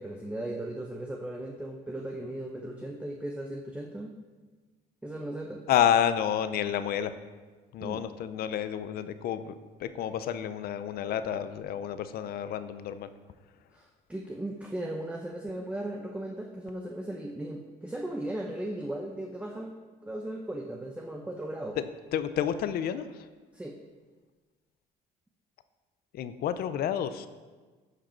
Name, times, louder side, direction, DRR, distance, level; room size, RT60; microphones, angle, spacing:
voice 1, 0.0-4.1 5.0-5.7 7.8-8.0 13.7-19.7 20.0-21.8 23.5-23.8, right 1 dB, 5° right, 1 dB, 0.7 m, -37 dB
voice 2, 5.7-7.1 7.7-9.5 9.8-13.1 21.8-21.9 22.1-23.3 26.1-27.3, left 9 dB, 65° left, 12 dB, 0.6 m, -29 dB
12.5 x 5.1 x 4.4 m, 1.4 s
cardioid pair, 110°, 17 cm